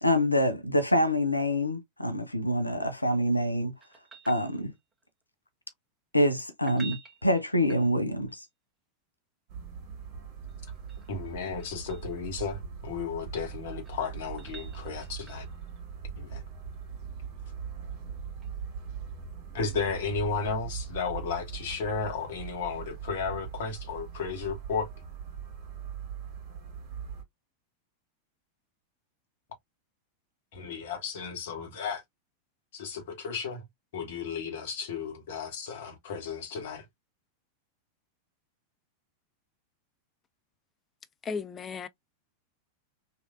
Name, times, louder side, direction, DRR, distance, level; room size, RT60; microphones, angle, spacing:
voice 1, 0.0-3.7 4.3-4.7 6.1-8.4, left 1 dB, 85° left, 0.6 m, -26 dB
sound 1, 3.8-5.0 6.5-8.3 10.5-12.1 13.5-15.6 18.4-18.5, right 6 dB, 15° right, 1.2 m, -50 dB
sound 2, 9.5-27.2, right 7 dB, 45° right, 1.8 m, -41 dB
voice 2, 11.1-15.4 16.2-16.4 19.5-24.9 30.5-32.0 32.7-33.6 33.9-36.8, left 5 dB, 55° left, 1.2 m, -34 dB
voice 3, 41.2-41.9, left 5 dB, 20° left, 0.4 m, -35 dB
3.2 x 2.7 x 2.5 m
figure-of-eight pair, 90°, 0 cm